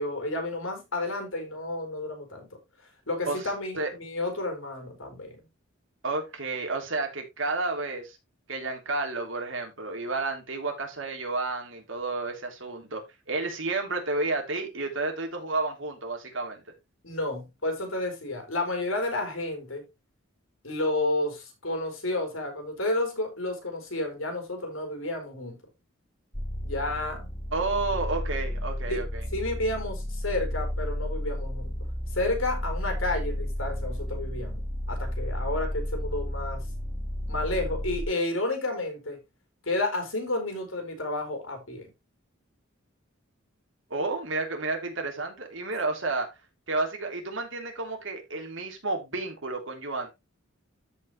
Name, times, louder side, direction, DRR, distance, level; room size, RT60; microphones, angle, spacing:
voice 1, 0.0-2.5 3.1-5.3 17.0-19.8 20.6-25.6 26.6-27.3 28.9-29.0 29.3-31.8 32.1-36.7 37.3-39.2 39.6-41.9, left 2 dB, 85° left, 4.3 m, -31 dB
voice 2, 6.0-8.2 8.5-16.6 27.5-29.2 43.9-46.3 46.7-50.1, right 3 dB, 70° right, 3.2 m, -31 dB
sound 1, 26.3-38.0, equal, 10° left, 1.2 m, -32 dB
13.5 x 5.4 x 3.1 m
head